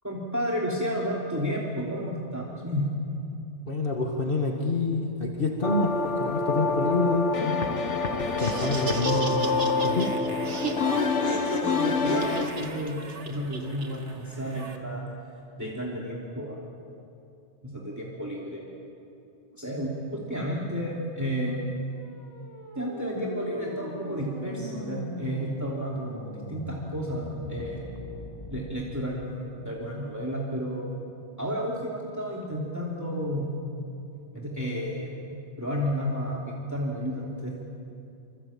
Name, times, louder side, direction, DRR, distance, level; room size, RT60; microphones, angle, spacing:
voice 1, 0.0-2.9 10.8-13.0 13.3-15.1 15.6-16.6 17.6-18.7 19.5-21.7 22.8-27.9 28.5-30.9 31.4-33.5 34.3-37.6, equal, 15° right, -4 dB, 3.0 m, -32 dB
voice 2, 3.7-7.6 8.4-9.5 9.8-10.1, left 3 dB, 50° left, 1 dB, 2.2 m, -27 dB
sound 1, 5.6-12.5, left 4 dB, 90° left, 1.9 m, -27 dB
Laughter, 8.2-14.8, right 3 dB, 75° right, 2.2 m, -36 dB
sound 2, 21.9-29.0, left 1 dB, 25° left, 2.3 m, -41 dB
26.0 x 26.0 x 8.7 m, 2.6 s
omnidirectional pair, 1.2 m